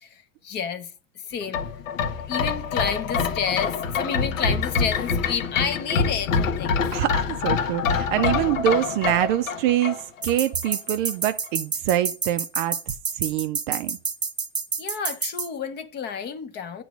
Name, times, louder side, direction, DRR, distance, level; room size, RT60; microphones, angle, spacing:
voice 1, 0.0-1.6 2.3-6.8 14.8-16.8, left 7 dB, 25° left, 0.7 m, -30 dB
sound 1, 1.4-10.3 10.7-10.8, left 5 dB, 80° left, 1.1 m, -25 dB
voice 2, 6.9-14.0, right 12 dB, 45° right, 0.4 m, -25 dB
sound 2, 10.2-15.5, right 5 dB, 10° right, 0.9 m, -28 dB
9.1 x 3.1 x 6.1 m
supercardioid pair, 140°, 38 cm